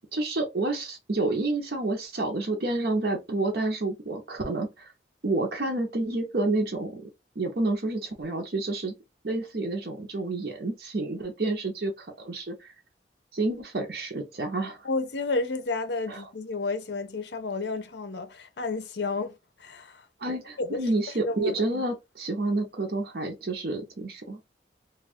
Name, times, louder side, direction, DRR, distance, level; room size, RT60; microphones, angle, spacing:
voice 1, 0.1-4.9 5.2-7.1 7.4-8.9 9.2-12.7 13.3-14.9 16.1-16.2 20.2-24.4, right 2 dB, 60° right, 0.7 m, -29 dB
voice 2, 14.8-20.8 21.3-21.5, left 3 dB, 75° left, 0.6 m, -31 dB
2.5 x 2.3 x 3.4 m
head